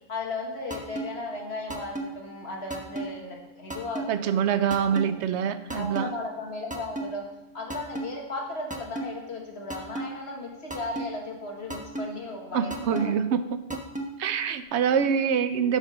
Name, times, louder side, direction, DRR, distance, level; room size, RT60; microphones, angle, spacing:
voice 1, 0.1-4.5 4.8-5.2 5.7-7.2 7.5-13.2, left 2 dB, 70° left, 0 dB, 1.8 m, -36 dB
sound 1, 0.7-1.0 1.7-2.1 2.7-3.0 3.7-4.1 4.7-5.1 5.7-6.1 6.7-7.0 7.7-8.1 8.7-9.0 9.7-10.1 10.7-11.1 11.7-12.1 12.7-13.0 13.7-14.1, right 2 dB, 10° right, 0.8 m, -32 dB
voice 2, 4.1-6.1 12.5-13.4 13.7-13.8 14.2-15.8, right 7 dB, 85° right, 11 dB, 0.9 m, -25 dB
7.8 x 5.4 x 6.2 m, 1.0 s
omnidirectional pair, 1.1 m